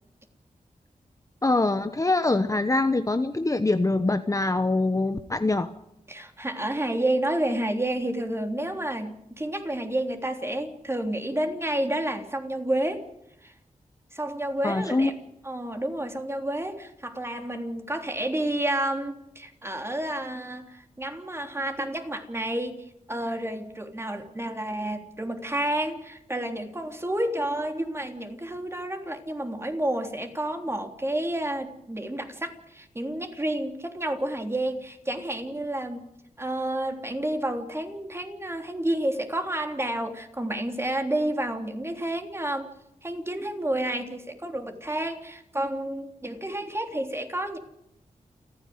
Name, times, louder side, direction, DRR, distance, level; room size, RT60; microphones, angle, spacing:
voice 1, 1.4-5.7 14.6-15.1, left 2 dB, 25° left, 9 dB, 1.0 m, -24 dB
voice 2, 6.1-13.0 13.4-13.5 14.1-15.1 15.4-36.0 36.4-42.7 43.0-47.6, right 1 dB, 20° right, 4 dB, 3.5 m, -30 dB
29.5 x 9.9 x 9.6 m, 0.80 s
wide cardioid pair, 80°, 14 cm